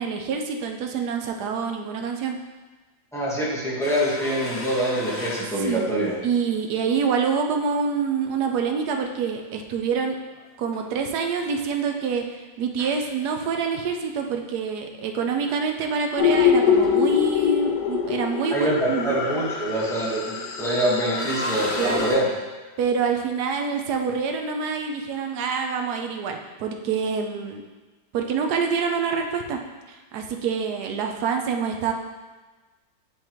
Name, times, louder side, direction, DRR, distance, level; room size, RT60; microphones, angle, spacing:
voice 1, 0.0-2.4 5.6-5.9 6.2-10.2 10.6-12.2 12.6-19.2 21.8-22.1 22.8-27.6 28.1-29.6 29.9-31.9, right 5 dB, 70° right, 3 dB, 1.1 m, -26 dB
voice 2, 3.1-6.1 18.5-22.3, right 1 dB, ahead, -8 dB, 1.3 m, -25 dB
sound 1, 3.8-6.3 6.6-7.2 7.6-7.7 9.7-10.8 11.2-12.2 12.7-13.7 14.6-14.7 15.2-15.3 15.4-15.6 16.0-16.4 16.7-17.1 19.9-20.7 21.1-22.2, left 1 dB, 50° left, 0.9 m, -37 dB
sound 2, 16.2-22.1, left 8 dB, 70° left, 0.9 m, -24 dB
9.5 x 3.7 x 3.0 m, 1.2 s
omnidirectional pair, 2.0 m